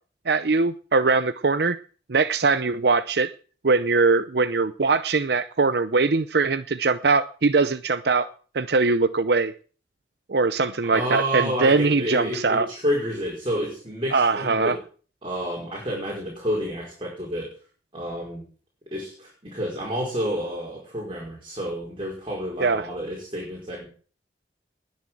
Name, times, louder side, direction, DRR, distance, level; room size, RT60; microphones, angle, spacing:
voice 1, 0.3-1.8 2.1-3.3 3.6-8.3 8.5-9.5 10.3-12.7 14.1-14.8 22.6-22.9, right 4 dB, 65° right, 11 dB, 0.7 m, -21 dB
voice 2, 10.8-14.8 15.2-17.5 17.9-18.4 18.9-23.9, equal, 30° right, -2 dB, 5.2 m, -29 dB
20.5 x 7.5 x 7.7 m, 0.42 s
head